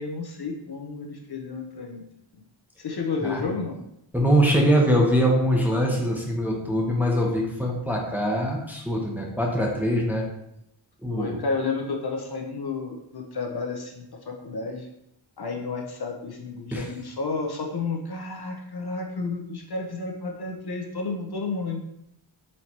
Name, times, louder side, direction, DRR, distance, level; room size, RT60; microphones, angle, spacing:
voice 1, 0.0-2.0 2.8-3.8 11.1-14.9 15.4-21.8, left 4 dB, 55° left, 1 dB, 0.7 m, -31 dB
voice 2, 4.1-10.3 11.0-11.4 16.7-16.9, equal, 5° right, -1 dB, 0.7 m, -23 dB
4.2 x 3.2 x 2.8 m, 0.79 s
wide cardioid pair, 105°, 46 cm